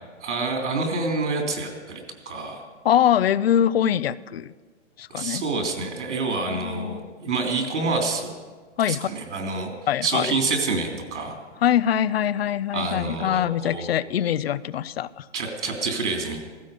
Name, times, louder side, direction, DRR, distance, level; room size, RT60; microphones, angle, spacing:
voice 1, 0.2-2.6 5.1-8.3 8.8-9.7 10.0-11.4 12.7-14.0 15.3-16.4, right 3 dB, 80° right, 2 dB, 3.3 m, -27 dB
voice 2, 2.8-4.5 5.0-5.4 6.5-7.1 8.8-9.1 9.9-10.3 11.6-15.2, left 10 dB, 55° left, 19 dB, 0.5 m, -23 dB
16.0 x 15.5 x 5.2 m, 1.5 s
hypercardioid pair, 170°, 36 cm